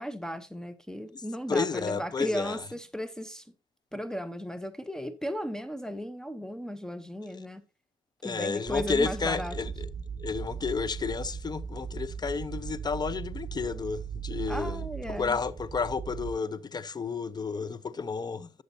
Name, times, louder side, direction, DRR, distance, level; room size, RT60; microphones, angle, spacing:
voice 1, 0.0-3.5 3.9-7.6 8.2-9.6 14.5-15.4, equal, 5° left, 0.8 m, -36 dB
voice 2, 1.5-2.6 8.2-9.9 10.2-14.8 15.2-18.5, left 5 dB, 35° left, 0.7 m, -31 dB
sound 1, 8.7-16.3, right 6 dB, 30° right, 1.8 m, -38 dB
12.0 x 6.6 x 2.7 m
supercardioid pair, 65°, 12 cm